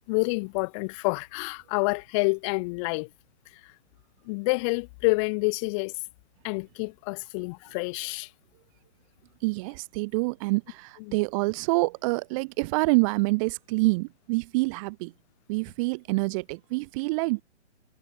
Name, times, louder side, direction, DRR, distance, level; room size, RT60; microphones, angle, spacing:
voice 1, 0.1-3.1 4.3-5.9 6.4-8.3 11.1-11.2, left 30 dB, 25° left, 4.2 m, -28 dB
voice 2, 9.4-15.1 15.5-17.4, right 26 dB, 30° right, 6.6 m, -26 dB
figure-of-eight pair, 135°, 35 cm